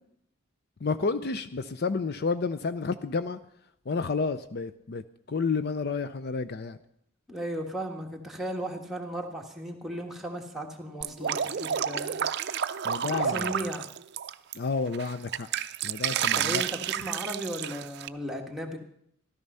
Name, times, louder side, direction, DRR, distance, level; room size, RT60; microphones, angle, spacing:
voice 1, 0.8-3.4 3.9-5.0 5.3-6.8 12.8-13.5 14.5-15.5 15.8-16.6, left 4 dB, 50° left, 12 dB, 0.5 m, -30 dB
voice 2, 7.3-13.9 16.3-18.8, right 1 dB, ahead, 0 dB, 1.6 m, -36 dB
Drip, 11.0-14.5 14.9-18.1, right 9 dB, 55° right, 0.5 m, -30 dB
14.0 x 12.5 x 5.5 m, 0.71 s
head